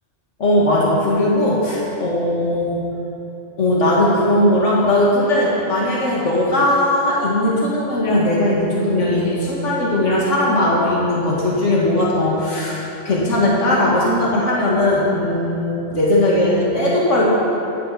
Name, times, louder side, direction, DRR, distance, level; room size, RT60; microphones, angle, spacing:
voice 1, 0.4-2.8 3.6-17.3, left 1 dB, 85° left, -5 dB, 2.4 m, -18 dB
17.5 x 10.5 x 4.3 m, 3.0 s
omnidirectional pair, 1.2 m